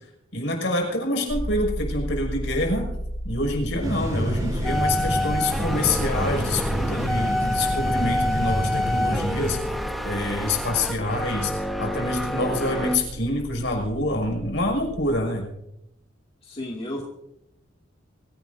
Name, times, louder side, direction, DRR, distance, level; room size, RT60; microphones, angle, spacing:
voice 1, 0.3-2.9 3.2-9.6 10.0-15.5, left 1 dB, 65° left, 1 dB, 5.8 m, -26 dB
sound 1, 1.3-15.2, equal, 80° right, 7.3 m, -35 dB
sound 2, 3.8-9.8, equal, 20° right, 4.5 m, -28 dB
sound 3, 4.6-13.0, left 1 dB, ahead, 1.2 m, -28 dB
voice 2, 16.4-17.0, left 1 dB, 30° left, -2 dB, 2.3 m, -33 dB
25.0 x 16.5 x 2.7 m, 0.84 s
head